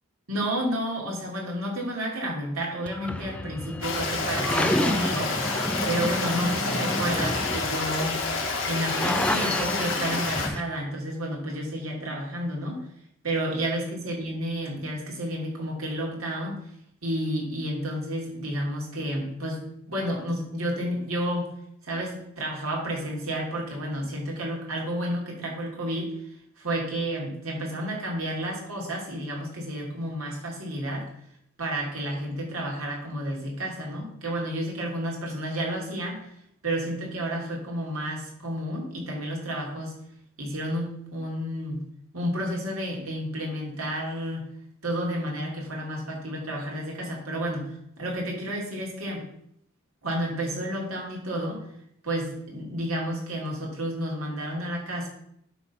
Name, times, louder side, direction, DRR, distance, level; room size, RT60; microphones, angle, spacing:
voice 1, 0.3-5.4 5.9-8.2 8.7-12.9 13.2-16.6 17.0-21.5 21.8-26.1 26.6-31.1 31.6-36.4 36.6-39.9 40.4-41.8 42.1-44.4 44.8-49.2 50.0-51.6 52.0-55.1, equal, 90° right, -1 dB, 3.0 m, -31 dB
sound 1, 2.9-10.6, left 1 dB, 5° left, 0.4 m, -30 dB
Stream, 3.8-10.5, left 3 dB, 60° left, 2.0 m, -29 dB
11.0 x 3.8 x 5.9 m, 0.72 s
head